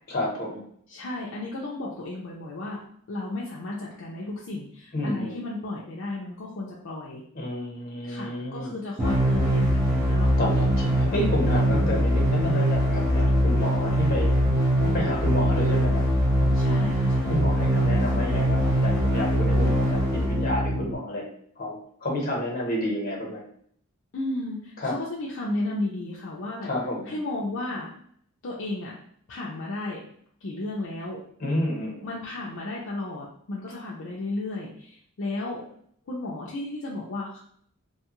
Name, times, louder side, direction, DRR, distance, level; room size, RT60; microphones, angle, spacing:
voice 1, 0.1-0.6 4.9-5.4 7.3-8.7 10.4-16.0 16.4-16.6 17.3-21.3 21.6-23.4 24.8-24.9 26.6-27.1 31.4-32.0, left 1 dB, 45° left, -2 dB, 1.0 m, -30 dB
voice 2, 0.9-2.8 3.1-7.2 8.0-10.6 16.5-17.3 24.1-26.7 27.1-27.9 28.4-29.0 29.3-30.0 30.4-31.2 32.0-35.6 36.1-37.4, left 2 dB, 65° left, -4 dB, 0.5 m, -34 dB
sound 1, 9.0-21.0, equal, 15° right, 0.7 m, -22 dB
2.7 x 2.3 x 2.9 m, 0.63 s
head